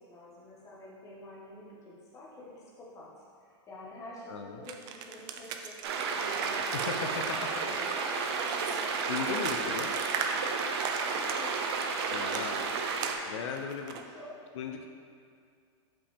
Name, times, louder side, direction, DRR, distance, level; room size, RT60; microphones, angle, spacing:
voice 1, 0.0-3.1 3.4-7.2 7.5-10.4 11.3-12.7 13.8-14.5, left 1 dB, 20° left, -6 dB, 1.4 m, -48 dB
voice 2, 4.3-4.6 6.7-7.6 9.1-9.9 12.1-12.6 13.3-14.0 14.5-14.9, left 6 dB, 85° left, 4 dB, 0.5 m, -37 dB
sound 1, 4.7-11.8 12.3-14.0, right 7 dB, 30° right, 0.3 m, -39 dB
sound 2, 5.8-13.2, right 5 dB, 60° right, 0.6 m, -32 dB
5.6 x 5.3 x 3.4 m, 2.3 s
supercardioid pair, 150°, 15 cm